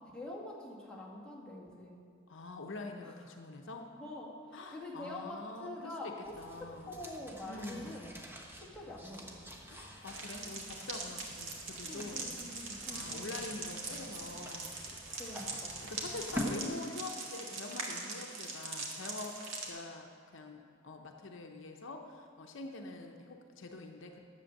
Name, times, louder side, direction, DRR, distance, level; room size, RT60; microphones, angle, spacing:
voice 1, 0.1-2.0 3.0-3.1 4.0-8.1 8.6-9.5 11.8-13.3 15.2-15.8 16.5-16.7, left 1 dB, 5° left, -6 dB, 1.9 m, -45 dB
voice 2, 2.3-3.9 4.5-7.0 7.4-8.1 9.7-12.3 12.6-14.8 15.8-19.4 19.6-24.2, left 3 dB, 70° left, 3 dB, 0.8 m, -45 dB
sound 1, 6.2-16.5, left 1 dB, 10° right, 1.1 m, -47 dB
sound 2, 10.1-19.7, right 3 dB, 90° right, 1.7 m, -42 dB
10.5 x 7.7 x 6.5 m, 2.3 s
head